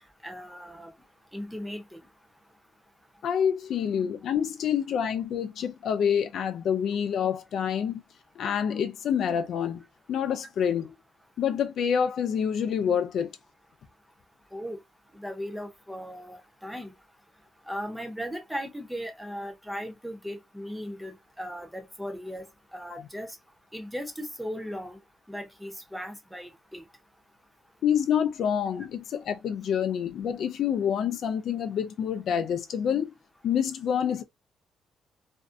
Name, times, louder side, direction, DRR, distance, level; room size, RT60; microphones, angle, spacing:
voice 1, 0.2-0.9 1.3-2.0 14.5-14.8 15.1-16.9 17.7-22.5 22.7-23.4 23.7-25.0 25.3-26.8, equal, 5° right, 0.7 m, -37 dB
voice 2, 3.2-8.0 8.4-10.9 11.4-13.3 22.9-23.0 27.8-33.1 33.4-34.2, left 8 dB, 70° left, 0.3 m, -27 dB
2.5 x 2.1 x 2.4 m
cardioid pair, 90°, 0 cm